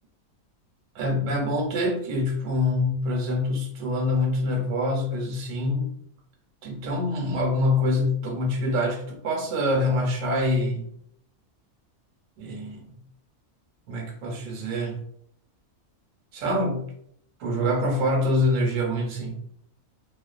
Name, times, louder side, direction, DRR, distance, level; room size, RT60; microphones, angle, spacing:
voice 1, 1.0-5.9 6.6-10.9 12.4-13.0 13.9-15.0 16.3-16.8 17.4-19.3, left 1 dB, 70° right, 1 dB, 1.0 m, -25 dB
2.4 x 2.2 x 2.3 m, 0.68 s
omnidirectional pair, 1.5 m